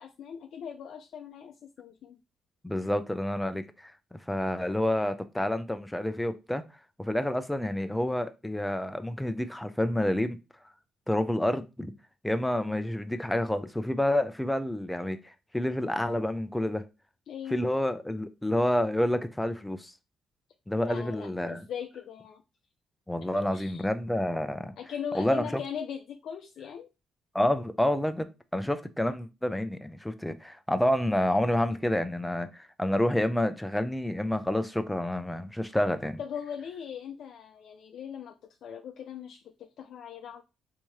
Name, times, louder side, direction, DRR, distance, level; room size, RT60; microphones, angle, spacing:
voice 1, 0.0-2.2 17.3-17.6 20.7-22.4 23.5-23.9 24.8-26.9 36.2-38.3 38.6-40.4, left 8 dB, 70° left, 0.4 m, -40 dB
voice 2, 2.6-3.9 4.3-6.6 7.0-10.4 11.1-11.9 12.2-15.2 15.5-16.9 17.5-19.9 20.7-21.7 23.1-24.7 25.1-25.6 27.3-36.2, left 1 dB, 5° left, 0.4 m, -28 dB
3.5 x 2.7 x 3.0 m
cardioid pair, 90°, 0 cm